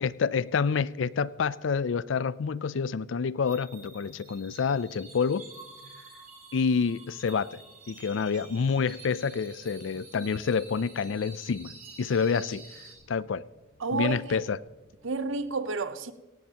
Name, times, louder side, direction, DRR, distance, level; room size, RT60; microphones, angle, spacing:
voice 1, 0.0-5.4 6.5-7.6 7.9-12.6 13.1-13.4 13.9-14.6, left 5 dB, 65° left, 0.4 m, -28 dB
sound 1, 3.4-12.9, right 3 dB, 45° right, 3.5 m, -49 dB
sound 2, 10.2-15.4, left 1 dB, 85° left, 2.8 m, -63 dB
voice 2, 13.8-14.4 15.0-16.1, right 4 dB, 75° right, 0.8 m, -31 dB
17.0 x 17.0 x 2.9 m
head